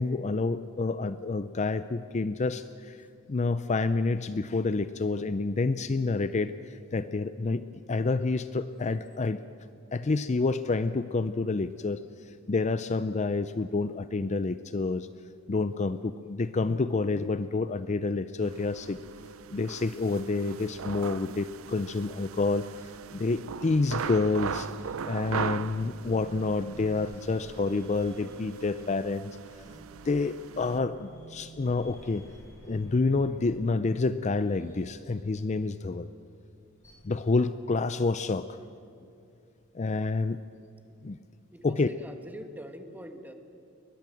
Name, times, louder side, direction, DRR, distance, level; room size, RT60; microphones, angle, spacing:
voice 1, 0.0-2.6 3.3-6.5 6.9-7.6 7.9-9.4 9.9-12.0 12.5-15.1 15.5-19.0 19.5-22.7 23.1-24.7 25.0-29.2 30.1-32.2 32.7-36.1 37.0-38.5 39.8-40.4 41.0-41.2 41.6-41.9, left 3 dB, 35° left, 13 dB, 0.5 m, -28 dB
sound 1, 18.4-30.8, right 7 dB, 90° right, 0.5 m, -40 dB
sound 2, 23.5-36.0 36.8-37.1, right 2 dB, 15° left, 5.4 m, -52 dB
voice 2, 41.5-43.3, equal, 10° right, 6 dB, 1.6 m, -44 dB
22.0 x 20.0 x 7.7 m, 2.5 s
head